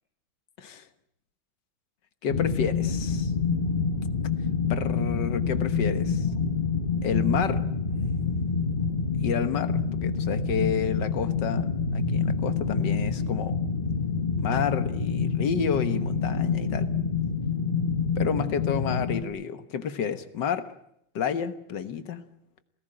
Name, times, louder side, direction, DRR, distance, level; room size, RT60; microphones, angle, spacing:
voice 1, 2.2-3.3 4.7-6.3 7.0-7.6 9.2-13.6 14.4-16.9 18.1-20.7 21.1-22.2, left 7 dB, 60° left, 10 dB, 1.8 m, -30 dB
sound 1, 2.3-19.2, left 5 dB, 30° left, 1.3 m, -27 dB
28.0 x 16.5 x 8.9 m, 0.79 s
omnidirectional pair, 2.3 m